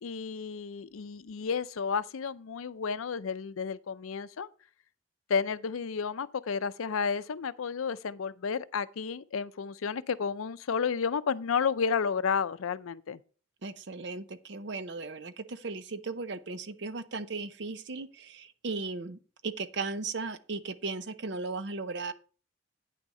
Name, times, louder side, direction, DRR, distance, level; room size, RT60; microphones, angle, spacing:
voice 1, 0.0-4.5 5.3-13.2, left 6 dB, 85° left, 0.5 m, -31 dB
voice 2, 13.6-22.1, right 3 dB, 55° right, 0.6 m, -36 dB
9.2 x 6.2 x 4.1 m
head